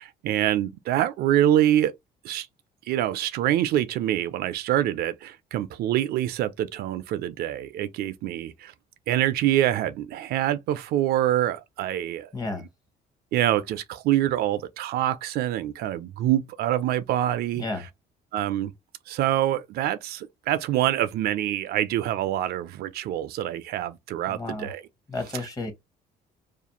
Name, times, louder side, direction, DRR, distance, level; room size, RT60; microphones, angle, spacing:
voice 1, 0.0-1.9 2.2-2.5 2.9-8.7 9.1-12.3 13.3-17.6 18.3-18.7 19.1-24.8, right 12 dB, 70° right, 0.4 m, -25 dB
voice 2, 12.3-12.7 17.6-17.8 24.3-24.7 25.1-25.7, left 2 dB, 20° left, 0.9 m, -32 dB
2.4 x 2.0 x 2.9 m
cardioid pair, 110°, 17 cm